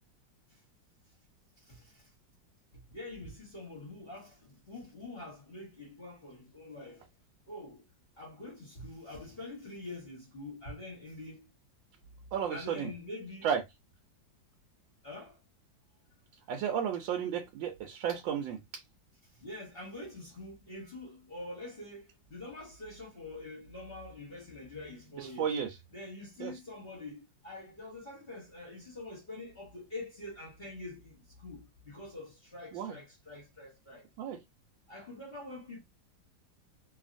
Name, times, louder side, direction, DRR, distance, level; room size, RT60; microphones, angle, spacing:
voice 1, 1.6-2.1 2.7-7.0 7.5-7.8 8.2-11.5 12.5-13.5 15.0-15.4 19.3-25.5 25.9-34.1 34.9-35.8, left 2 dB, 40° left, 1.1 m, -45 dB
voice 2, 12.3-12.9 13.4-13.6 16.5-18.8 25.2-25.8 26.4-26.5 32.7-33.0 34.2-34.4, right 8 dB, 90° right, 1.3 m, -33 dB
2.8 x 2.7 x 2.5 m
omnidirectional pair, 2.0 m